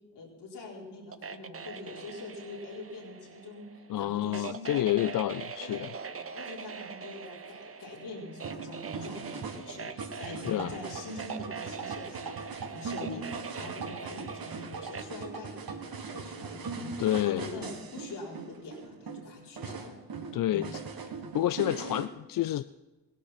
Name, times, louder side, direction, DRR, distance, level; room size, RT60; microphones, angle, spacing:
voice 1, 0.1-4.9 5.6-19.9 20.5-20.8, left 2 dB, 75° left, -3 dB, 4.5 m, -44 dB
sound 1, 1.1-15.0, right 6 dB, 35° right, 0.9 m, -43 dB
voice 2, 3.9-5.9 10.2-10.7 17.0-17.5 20.3-20.8 21.3-22.8, left 13 dB, 55° left, 14 dB, 0.5 m, -29 dB
sound 2, 8.4-22.1, right 4 dB, 60° right, 1.8 m, -40 dB
17.0 x 11.5 x 5.9 m, 1.1 s
supercardioid pair, 60°, 40 cm